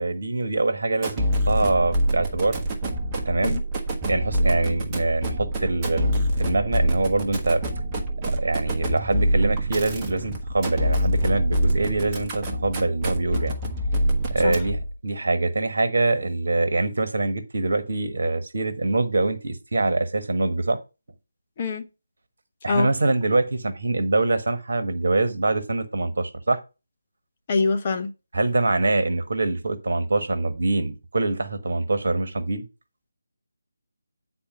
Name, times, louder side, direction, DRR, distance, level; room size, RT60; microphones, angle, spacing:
voice 1, 0.0-2.6 3.2-3.6 4.0-7.6 8.3-13.5 14.3-20.8 22.6-26.6 28.3-32.6, right 2 dB, 55° right, 1.2 m, -24 dB
sound 1, 1.0-14.9, equal, 15° right, 1.2 m, -26 dB
voice 2, 21.6-21.9 22.7-22.9 27.5-28.1, left 4 dB, 30° left, 0.9 m, -24 dB
9.0 x 4.3 x 5.5 m
figure-of-eight pair, 155°, 0 cm